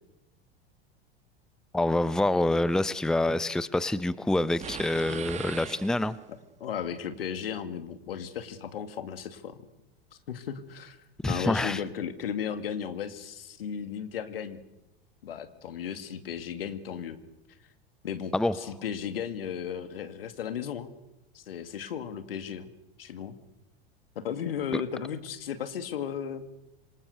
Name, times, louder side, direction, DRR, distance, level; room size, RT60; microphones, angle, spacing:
voice 1, 1.7-6.1 11.2-11.8 18.3-18.5, left 1 dB, ahead, 17 dB, 0.8 m, -26 dB
sound 1, 4.6-6.4, right 8 dB, 25° right, 1.4 m, -40 dB
voice 2, 6.6-9.6 10.3-11.0 11.2-14.6 15.2-17.2 18.0-20.9 21.3-22.7 23.0-23.4 24.2-26.4, left 8 dB, 70° left, 10 dB, 2.4 m, -35 dB
27.0 x 24.5 x 6.9 m, 0.95 s
figure-of-eight pair, 80°, 30 cm